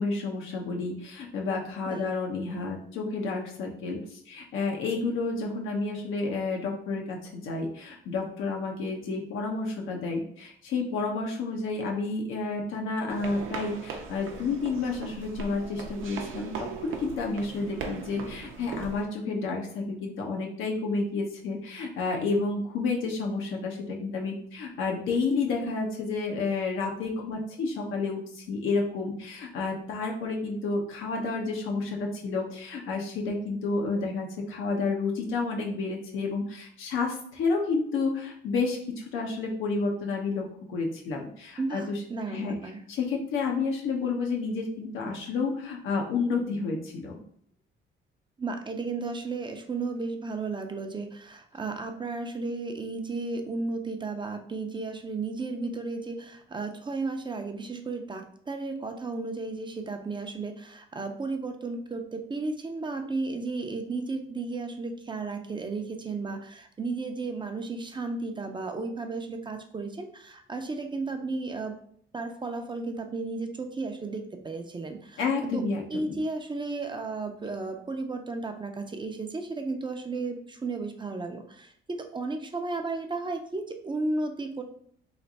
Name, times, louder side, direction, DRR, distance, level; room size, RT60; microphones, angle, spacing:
voice 1, 0.0-42.0 42.3-42.6 42.9-47.2 75.2-76.2, left 4 dB, 85° left, 1 dB, 0.9 m, -30 dB
sound 1, 13.1-19.0, right 5 dB, 85° right, 0.6 m, -39 dB
voice 2, 41.6-42.8 48.4-71.7 72.1-75.2 75.5-75.6 75.9-84.6, right 3 dB, 25° right, 5 dB, 0.5 m, -34 dB
3.3 x 2.5 x 4.1 m, 0.63 s
cardioid pair, 90°, 20 cm